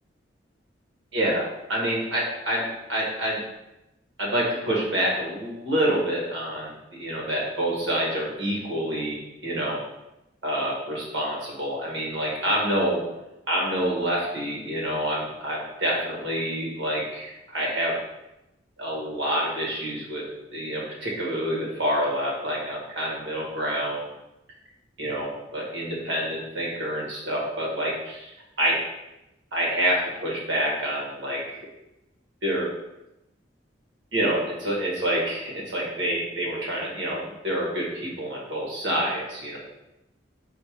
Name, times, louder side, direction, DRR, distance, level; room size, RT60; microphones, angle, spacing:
voice 1, 1.1-3.4 4.2-6.7 7.0-9.8 10.4-13.0 13.5-17.9 18.8-20.2 20.5-24.1 25.0-28.3 28.6-28.8 29.5-31.6 32.4-32.7 34.1-39.6, right 1 dB, 90° right, -3 dB, 1.4 m, -27 dB
4.4 x 2.5 x 4.6 m, 0.93 s
head